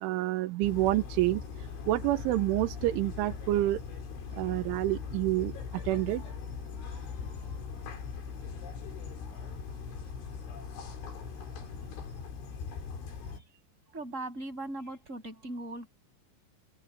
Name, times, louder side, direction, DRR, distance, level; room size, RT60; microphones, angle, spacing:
voice 1, 0.0-3.8 4.3-5.5 5.9-6.2, right 16 dB, 85° right, 3.6 m, -28 dB
sound 1, 0.6-13.4, left 5 dB, 75° left, 6.5 m, -40 dB
voice 2, 13.9-15.9, right 2 dB, 15° right, 8.0 m, -39 dB
open air
omnidirectional pair, 5.5 m